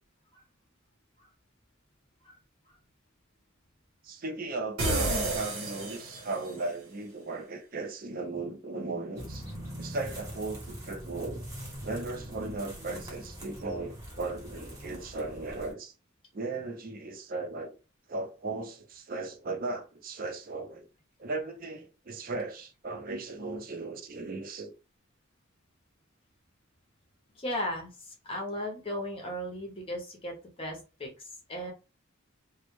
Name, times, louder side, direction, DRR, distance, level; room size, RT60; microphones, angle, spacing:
voice 1, 4.0-9.5 9.8-11.4 11.8-15.9 16.3-17.8 18.1-20.9 21.2-24.7, right 3 dB, 45° right, 0.5 m, -37 dB
sound 1, 4.8-6.6, right 2 dB, 85° right, 1.0 m, -30 dB
sound 2, 9.2-15.7, equal, 15° right, 0.8 m, -42 dB
voice 2, 27.3-31.7, equal, 25° left, 0.6 m, -37 dB
2.1 x 2.0 x 3.0 m
head